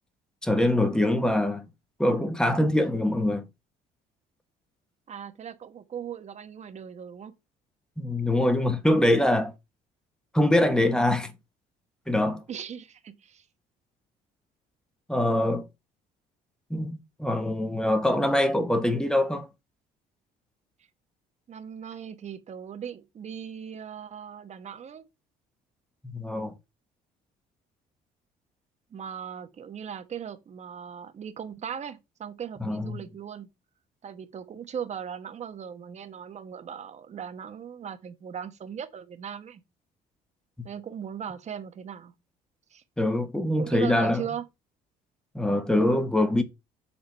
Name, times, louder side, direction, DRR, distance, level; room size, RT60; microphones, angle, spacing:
voice 1, 0.4-1.6 2.0-3.4 8.0-9.5 10.3-11.3 12.1-12.4 15.1-15.7 16.7-19.5 26.1-26.5 32.6-33.0 43.0-44.2 45.3-46.4, left 1 dB, 5° left, 1.3 m, -24 dB
voice 2, 5.1-7.3 12.5-13.5 21.5-25.1 28.9-33.5 34.0-39.6 40.6-42.1 42.7-42.8 43.6-44.5, right 8 dB, 40° right, 1.2 m, -38 dB
7.0 x 3.9 x 5.3 m
cardioid pair, 110°, 17 cm